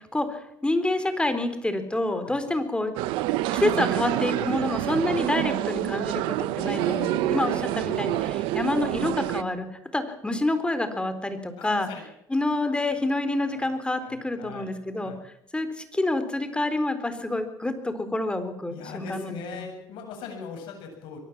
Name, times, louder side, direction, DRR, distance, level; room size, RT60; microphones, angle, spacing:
voice 1, 0.0-2.9 3.5-9.7 9.9-11.9 12.3-19.7, left 2 dB, 10° left, 10 dB, 4.0 m, -28 dB
sound 1, 3.0-9.4, right 15 dB, 80° right, 1.0 m, -27 dB
voice 2, 6.5-7.6 11.6-12.0 13.5-13.6 13.9-14.7 15.0-15.2 18.7-21.2, left 5 dB, 75° left, 3 dB, 7.9 m, -40 dB
23.0 x 18.5 x 7.5 m, 0.75 s
supercardioid pair, 75°, 9 cm